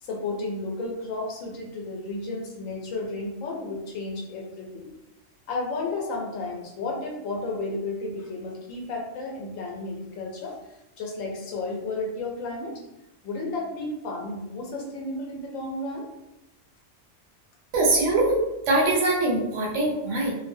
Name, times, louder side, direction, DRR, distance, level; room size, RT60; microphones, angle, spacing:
voice 1, 0.0-4.9 5.5-10.6 11.0-12.7 13.2-16.1, left 2 dB, 85° left, 0 dB, 1.0 m, -32 dB
voice 2, 17.7-20.3, right 2 dB, 70° right, -3 dB, 1.0 m, -23 dB
2.5 x 2.1 x 2.6 m, 0.94 s
omnidirectional pair, 1.3 m